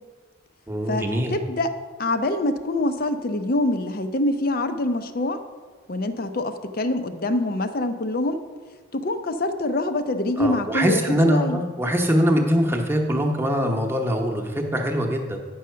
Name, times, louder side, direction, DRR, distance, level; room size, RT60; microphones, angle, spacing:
voice 1, 0.7-1.3 10.4-15.4, equal, 10° right, 2 dB, 0.9 m, -22 dB
voice 2, 1.3-1.7 2.0-5.4 5.9-8.4 8.9-11.6, left 2 dB, 45° left, 8 dB, 0.6 m, -25 dB
9.5 x 6.3 x 5.6 m, 1.5 s
head